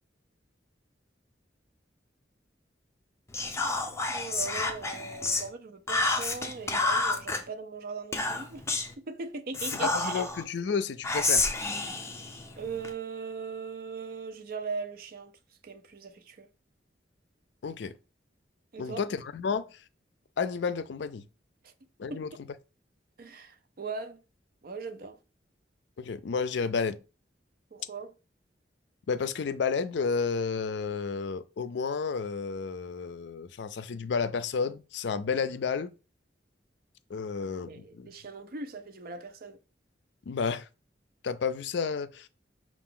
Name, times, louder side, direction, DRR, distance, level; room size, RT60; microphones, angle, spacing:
Whispering, 3.3-5.5 5.9-7.4 8.1-8.9 9.5-10.4 11.0-12.9, left 3 dB, 15° left, 0.6 m, -29 dB
voice 1, 4.1-8.6 9.0-10.2 12.6-15.3 15.6-16.5 18.7-19.0 21.6-21.7 22.1-22.2 23.2-24.2 24.6-25.2 27.7-28.1 37.7-39.6, right 4 dB, 55° right, 0.5 m, -39 dB
voice 2, 9.8-11.5 17.6-17.9 18.8-19.7 20.4-21.2 22.0-22.5 26.0-27.0 29.1-35.9 37.1-38.1 40.3-40.7 41.2-42.3, left 5 dB, 70° left, 0.4 m, -31 dB
5.8 x 2.4 x 3.7 m
head